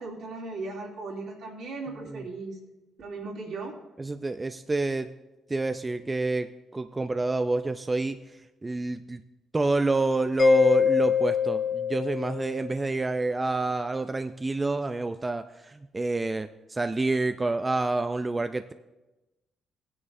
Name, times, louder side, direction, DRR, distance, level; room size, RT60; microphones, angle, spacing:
voice 1, 0.0-2.6 3.0-3.7, right 3 dB, 70° right, -3 dB, 2.7 m, -37 dB
voice 2, 4.0-5.1 5.5-9.2 9.5-18.7, right 3 dB, 20° right, 9 dB, 0.4 m, -28 dB
Mallet percussion, 10.4-12.9, left 6 dB, 35° left, 1.1 m, -24 dB
16.0 x 9.7 x 2.6 m, 1.0 s
cardioid pair, 90°, 0 cm